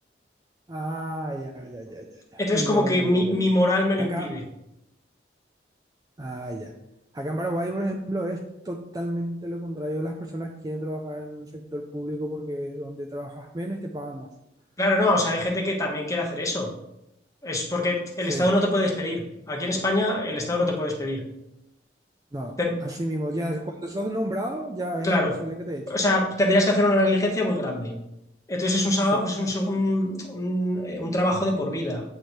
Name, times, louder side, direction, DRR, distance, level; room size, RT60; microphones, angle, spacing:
voice 1, 0.7-3.5 4.0-4.5 6.2-6.8 7.1-14.3 18.3-18.6 20.5-20.6 22.3-26.0 29.0-29.9, equal, 20° right, 2 dB, 0.4 m, -32 dB
voice 2, 2.4-4.4 14.8-16.7 17.4-21.2 22.6-22.7 25.0-25.3 25.9-27.9 28.5-32.0, left 1 dB, 20° left, -1 dB, 1.0 m, -24 dB
8.0 x 3.1 x 4.4 m, 0.86 s
head